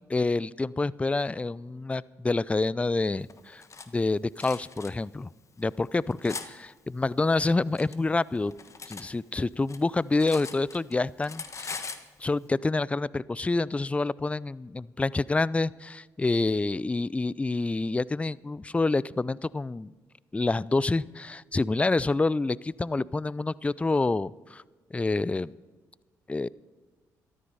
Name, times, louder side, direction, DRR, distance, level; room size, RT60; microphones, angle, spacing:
voice 1, 0.1-3.6 3.9-5.3 5.6-8.5 8.9-11.9 12.2-19.9 20.3-24.6 24.9-25.6 26.3-26.5, left 3 dB, 15° left, 22 dB, 0.4 m, -27 dB
Cutlery silverware, 3.3-3.9 4.4-4.9 5.6-6.5 7.4-9.1 9.4-10.9 11.2-12.1, left 5 dB, 40° left, 1.3 m, -41 dB
13.5 x 13.0 x 5.5 m, 1.3 s
supercardioid pair, 55°, 8 cm